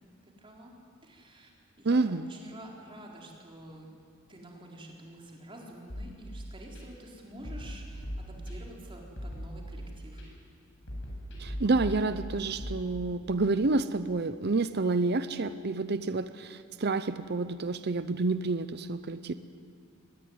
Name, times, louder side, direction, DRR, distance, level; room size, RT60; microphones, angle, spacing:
voice 1, 0.2-0.7 1.0-1.5 1.8-3.9 4.3-10.2, right 1 dB, 25° right, -1 dB, 4.3 m, -48 dB
voice 2, 1.8-2.3 11.4-19.3, right 3 dB, 50° right, 12 dB, 0.7 m, -29 dB
sound 1, 5.9-6.8 7.4-8.8 9.2-10.2 10.9-12.8, equal, 55° left, 7.9 m, -39 dB
24.0 x 19.5 x 9.6 m, 2.2 s
head